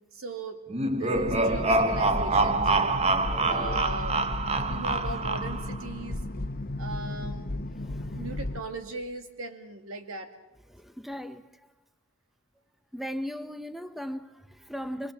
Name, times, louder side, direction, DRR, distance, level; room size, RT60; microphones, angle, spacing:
voice 1, 0.1-0.6 0.9-3.0 3.4-4.2 4.7-6.2 6.8-7.5 8.1-10.3, right 2 dB, 85° right, 2.3 m, -38 dB
sound 1, 0.7-5.8, right 2 dB, 30° right, 1.1 m, -26 dB
sound 2, 1.1-8.6, left 1 dB, 45° left, 1.1 m, -34 dB
voice 2, 3.3-3.9 4.7-4.8 7.8-8.2 10.7-11.5 12.9-15.1, equal, ahead, 0.8 m, -38 dB
24.5 x 21.5 x 7.3 m
head